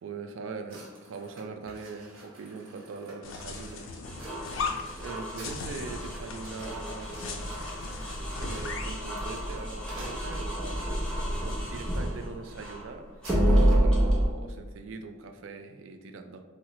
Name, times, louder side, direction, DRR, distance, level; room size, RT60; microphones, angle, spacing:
voice 1, 0.0-4.0 5.0-7.6 7.9-8.0 8.4-10.9 11.4-16.4, right 4 dB, 70° right, 7 dB, 0.3 m, -42 dB
sound 1, 0.7-10.8 11.4-11.7 12.0-12.2 12.4-13.9, right 1 dB, 85° right, 0.9 m, -51 dB
sound 2, 3.2-9.1, left 4 dB, 75° left, 0.4 m, -38 dB
sound 3, 4.0-12.8 13.2-14.3, equal, 5° left, 0.6 m, -29 dB
2.9 x 2.0 x 3.6 m, 1.4 s
head